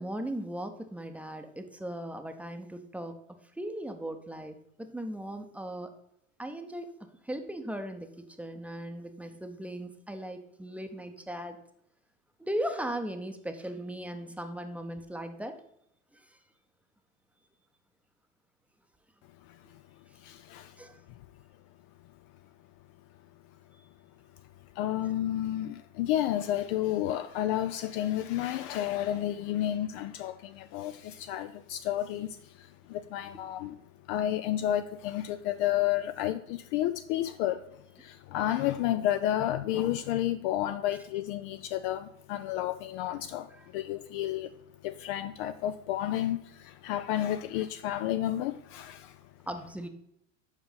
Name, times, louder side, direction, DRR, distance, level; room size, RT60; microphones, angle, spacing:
voice 1, 0.0-3.2 3.6-5.9 6.4-6.9 7.2-11.6 12.4-15.5 20.8-21.0 40.9-41.0 43.5-43.7 49.5-49.9, right 1 dB, 5° right, 0.7 m, -38 dB
voice 2, 20.2-20.8 24.8-33.8 34.1-44.5 44.8-49.2, left 12 dB, 45° left, 0.4 m, -31 dB
7.3 x 5.1 x 5.6 m
hypercardioid pair, 90°, 38 cm